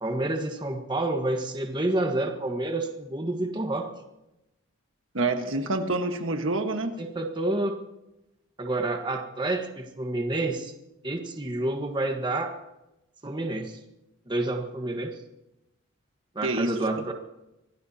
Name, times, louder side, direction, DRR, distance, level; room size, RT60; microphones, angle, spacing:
voice 1, 0.0-3.9 7.0-7.7 8.6-10.7 11.0-12.5 13.2-13.8 14.3-15.2 16.3-17.1, right 2 dB, 20° right, 3 dB, 1.4 m, -29 dB
voice 2, 5.1-6.9 16.4-16.7, right 2 dB, 70° right, 5 dB, 1.5 m, -27 dB
26.0 x 17.5 x 2.9 m, 0.92 s
head